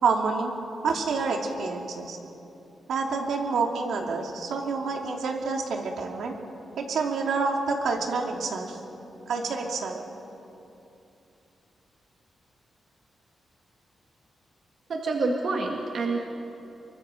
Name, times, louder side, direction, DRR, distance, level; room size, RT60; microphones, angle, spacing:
voice 1, 0.0-0.5 0.8-2.2 2.9-6.4 6.8-8.8 9.3-10.0, right 4 dB, 80° right, 2 dB, 2.6 m, -28 dB
voice 2, 14.9-16.2, right 3 dB, 55° right, 1 dB, 1.9 m, -27 dB
25.0 x 23.5 x 5.1 m, 2.8 s
wide cardioid pair, 160°, 0 cm